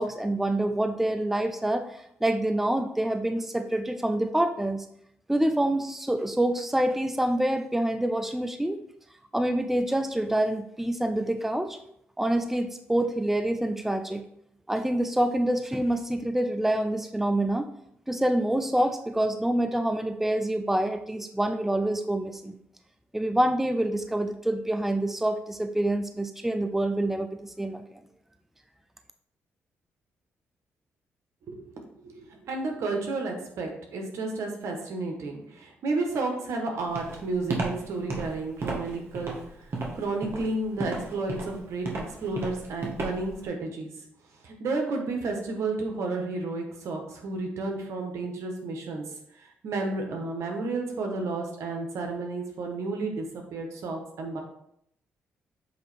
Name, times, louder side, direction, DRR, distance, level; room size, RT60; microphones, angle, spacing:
voice 1, 0.0-1.9 2.2-4.8 5.3-8.8 9.3-11.8 12.2-14.2 14.7-17.6 18.1-22.6 23.1-27.8, right 1 dB, 5° right, 7 dB, 0.5 m, -26 dB
voice 2, 31.5-39.6 39.9-43.9 44.4-49.0 49.4-54.4, right 3 dB, 75° right, 2 dB, 1.3 m, -32 dB
Walk footsteps, 37.0-43.4, right 3 dB, 55° right, 1.6 m, -33 dB
7.6 x 3.0 x 4.3 m, 0.73 s
cardioid pair, 70°, 5 cm